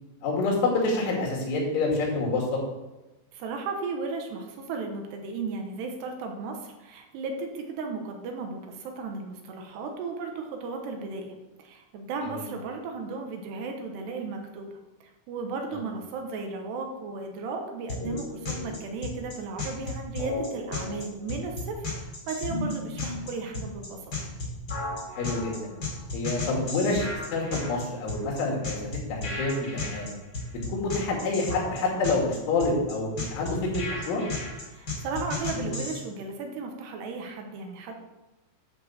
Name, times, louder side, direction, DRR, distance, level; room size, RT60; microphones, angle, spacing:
voice 1, 0.2-2.5 12.3-12.4 15.7-15.8 25.1-25.7 26.1-28.8 29.1-30.1 30.7-34.2, left 3 dB, 85° left, -2 dB, 4.8 m, -27 dB
voice 2, 3.3-14.8 15.3-24.2 34.7-38.0, right 4 dB, 75° right, 3 dB, 2.9 m, -35 dB
sound 1, 17.9-36.0, left 3 dB, 30° left, 2.3 m, -33 dB
10.5 x 5.3 x 6.9 m, 1.0 s
omnidirectional pair, 5.3 m